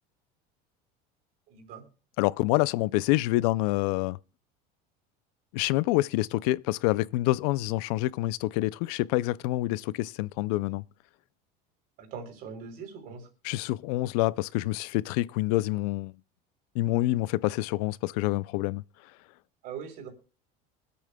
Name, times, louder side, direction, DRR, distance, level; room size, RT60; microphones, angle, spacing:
voice 1, 1.5-1.8 12.0-13.2 19.6-20.1, right 6 dB, 45° right, 3.4 m, -41 dB
voice 2, 2.2-4.2 5.5-10.8 13.4-16.1 16.8-18.8, left 18 dB, 75° left, 0.4 m, -27 dB
24.0 x 8.5 x 2.2 m
cardioid pair, 170°, 20 cm